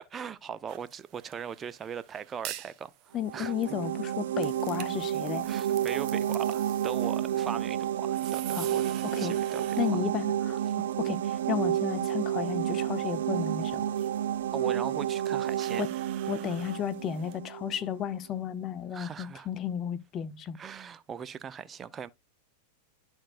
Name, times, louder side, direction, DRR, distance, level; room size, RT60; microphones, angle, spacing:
voice 1, 0.0-3.8 5.4-8.9 9.2-9.6 14.5-15.8 18.9-19.5 20.6-22.1, right 7 dB, 25° right, 0.6 m, -39 dB
sound 1, 0.7-17.4, right 13 dB, 45° right, 1.0 m, -48 dB
voice 2, 3.1-5.5 8.5-8.8 9.0-9.3 9.8-13.8 15.8-15.9 16.3-20.6, left 9 dB, 35° left, 0.8 m, -33 dB
sound 2, 3.2-17.9, right 11 dB, 80° right, 0.5 m, -30 dB
11.5 x 4.5 x 2.5 m
hypercardioid pair, 110°, 0 cm